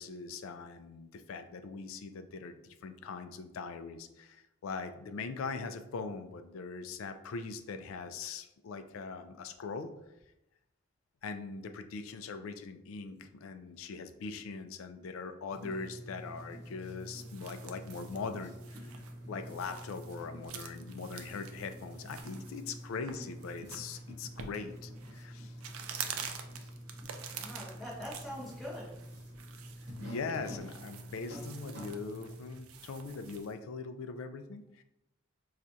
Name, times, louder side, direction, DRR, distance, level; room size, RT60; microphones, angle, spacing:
voice 1, 0.0-9.9 11.2-18.9 19.3-25.5 30.0-34.8, left 4 dB, 75° left, 9 dB, 0.3 m, -41 dB
sound 1, 15.5-32.5, equal, 50° right, 1.0 m, -47 dB
sound 2, 16.8-33.5, right 7 dB, 80° right, 0.4 m, -48 dB
voice 2, 27.0-29.0, equal, ahead, -7 dB, 1.0 m, -44 dB
4.3 x 2.4 x 2.6 m, 0.89 s
head